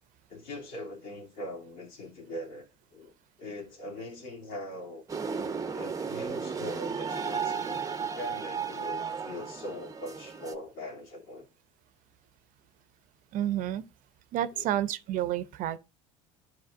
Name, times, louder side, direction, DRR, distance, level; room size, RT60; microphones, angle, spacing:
voice 1, 0.3-3.1 3.4-5.0 5.7-7.8 8.1-11.5 14.5-14.7, left 1 dB, 65° left, 3.0 m, -41 dB
sound 1, 5.1-10.5, right 6 dB, 20° right, 0.9 m, -34 dB
voice 2, 13.3-13.8 14.3-15.8, right 12 dB, 60° right, 0.8 m, -30 dB
11.5 x 4.9 x 2.6 m
supercardioid pair, 90°, 15 cm